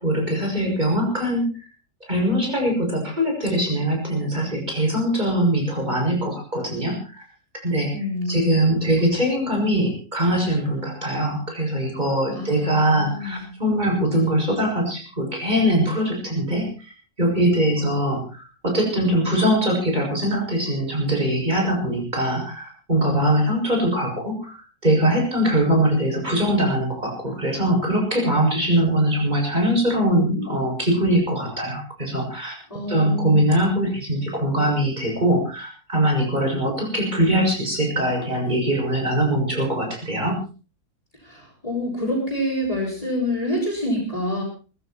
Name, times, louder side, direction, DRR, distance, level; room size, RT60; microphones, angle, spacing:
voice 1, 0.0-1.5 2.1-7.0 7.6-16.7 17.2-32.5 32.9-40.4, right 1 dB, 30° right, 1 dB, 7.2 m, -22 dB
voice 2, 7.9-8.8 12.3-13.4 32.7-33.6 41.2-44.4, left 1 dB, 25° left, -6 dB, 7.2 m, -27 dB
21.0 x 14.5 x 4.5 m, 0.36 s
omnidirectional pair, 1.5 m